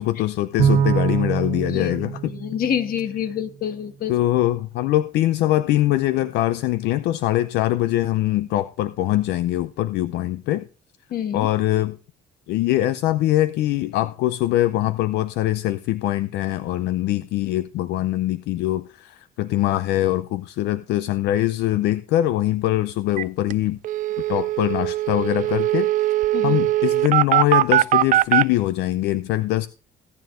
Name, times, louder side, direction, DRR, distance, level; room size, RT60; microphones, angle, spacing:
voice 1, 0.0-2.3 4.1-10.6 11.3-12.0 12.5-23.8 24.3-26.1 26.4-29.7, left 14 dB, 80° left, 0.5 m, -22 dB
Bowed string instrument, 0.6-3.2, right 7 dB, 75° right, 1.2 m, -23 dB
voice 2, 2.3-4.1 11.1-11.5 26.3-26.6, left 9 dB, 60° left, 1.3 m, -27 dB
sound 1, 23.2-23.3 23.5-23.6 23.8-28.4, right 14 dB, 50° right, 0.4 m, -20 dB
17.0 x 9.3 x 2.5 m
cardioid pair, 110°, 17 cm